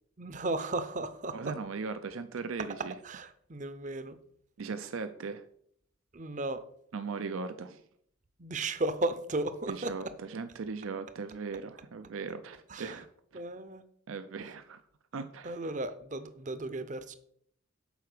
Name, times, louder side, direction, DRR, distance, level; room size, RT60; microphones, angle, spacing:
voice 1, 0.2-1.5 3.0-4.2 6.1-6.6 8.4-10.1 12.7-13.0 13.3-13.8 15.4-17.1, right 2 dB, 35° right, 12 dB, 0.6 m, -35 dB
voice 2, 1.3-2.9 4.6-5.4 6.9-7.8 9.7-13.1 13.3-13.4 14.1-14.8 15.1-15.6, right 4 dB, 80° right, 10 dB, 0.5 m, -38 dB
8.1 x 4.7 x 6.6 m, 0.66 s
head